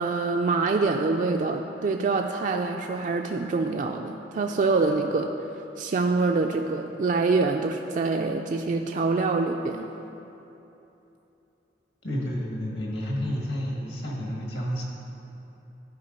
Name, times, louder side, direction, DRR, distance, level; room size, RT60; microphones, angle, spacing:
voice 1, 0.0-5.3 5.8-9.9, right 3 dB, 45° right, 3 dB, 0.3 m, -25 dB
voice 2, 12.0-14.8, equal, 65° left, -2 dB, 1.7 m, -30 dB
11.5 x 4.8 x 5.2 m, 3.0 s
head